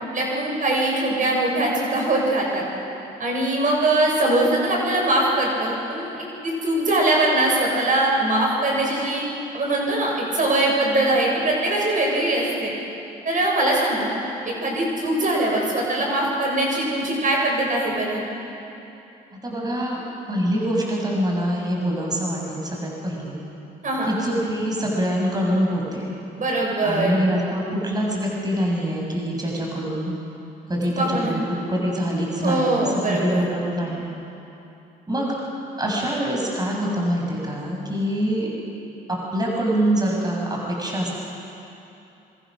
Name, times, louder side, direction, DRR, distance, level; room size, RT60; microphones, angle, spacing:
voice 1, 0.1-2.6 3.2-9.2 9.5-12.7 13.2-14.1 14.4-18.2 23.8-24.2 26.4-27.2 31.0-31.3 32.4-33.4, right 1 dB, 50° right, -2 dB, 7.1 m, -22 dB
voice 2, 19.4-20.0 20.3-23.4 24.1-26.1 26.8-30.1 30.7-34.1 35.1-35.4 35.8-38.5 39.1-41.1, equal, 20° right, -2 dB, 6.5 m, -25 dB
25.5 x 23.5 x 6.3 m, 2.8 s
supercardioid pair, 65°, 18 cm